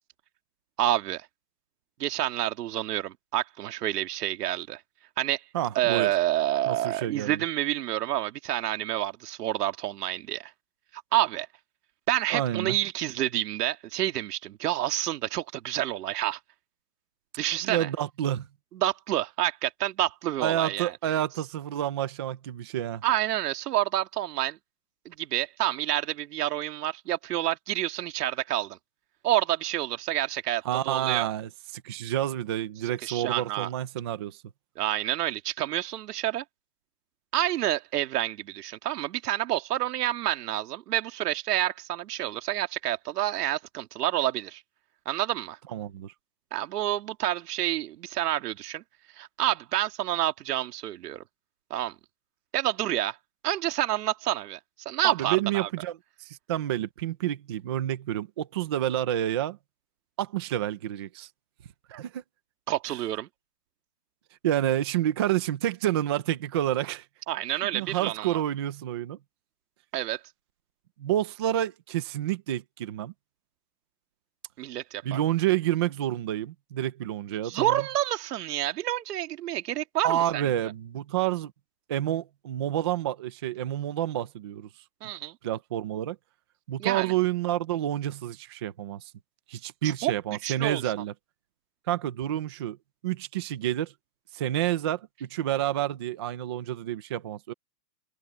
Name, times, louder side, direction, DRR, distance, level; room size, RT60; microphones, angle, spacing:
voice 1, 0.8-1.2 2.0-4.8 5.2-5.4 5.7-10.5 11.1-11.5 12.1-16.4 17.4-17.9 18.7-20.9 23.0-24.6 25.1-28.8 29.2-31.3 33.0-33.7 34.8-36.4 37.3-44.6 45.1-45.6 46.5-48.8 49.2-51.2 51.7-52.0 52.5-53.2 53.4-54.6 54.9-55.7 62.7-63.3 67.3-68.4 69.9-70.2 74.6-75.2 77.4-80.5 85.0-85.4 86.8-87.1 89.8-90.1 90.4-90.8, right 13 dB, 70° right, 2.4 m, -28 dB
voice 2, 5.5-6.1 6.7-7.4 12.3-12.8 17.6-18.5 20.4-23.0 30.7-34.4 45.7-46.1 55.0-59.6 60.2-61.3 61.9-62.2 64.4-67.0 67.7-69.2 71.0-73.1 75.0-77.8 80.0-81.5 81.9-84.7 85.4-86.2 86.7-89.0 89.5-91.1 91.9-92.8 93.0-93.9 94.3-97.5, right 12 dB, 20° right, 0.3 m, -29 dB
supercardioid pair, 150°, 48 cm